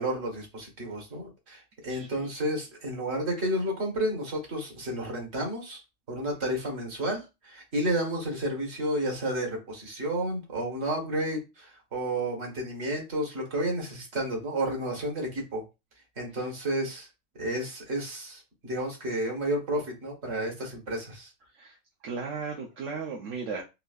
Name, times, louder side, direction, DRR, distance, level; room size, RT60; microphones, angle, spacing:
voice 1, 0.0-5.8 6.1-15.6 16.2-17.1 17.4-21.3, right 1 dB, 55° right, 0 dB, 1.6 m, -31 dB
voice 2, 1.9-2.3 21.5-21.8 22.0-23.6, right 5 dB, 75° right, -1 dB, 1.0 m, -36 dB
3.9 x 2.6 x 2.4 m, 0.26 s
omnidirectional pair, 1.3 m